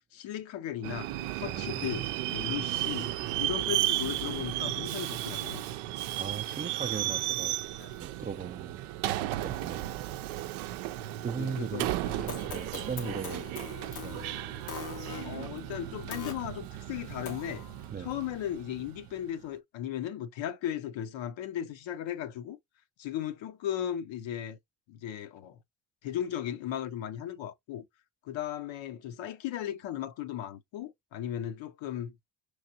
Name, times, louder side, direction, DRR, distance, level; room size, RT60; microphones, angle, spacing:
voice 1, 0.1-5.7 7.8-7.9 11.4-11.9 13.0-13.1 15.2-17.7 18.0-22.6 23.0-24.6 24.9-25.6 26.0-27.9 28.2-32.1, left 10 dB, 70° left, 0.8 m, -36 dB
Subway metro underground, 0.8-19.3, right 15 dB, 90° right, 0.5 m, -34 dB
voice 2, 1.4-1.9 6.2-7.5 8.0-8.8 9.4-10.0 11.2-14.3 17.9-18.1, right 6 dB, 20° right, 0.3 m, -38 dB
sound 1, 12.0-16.4 17.2-17.9, left 7 dB, 90° left, 1.2 m, -43 dB
5.8 x 3.2 x 2.8 m
supercardioid pair, 60°, 48 cm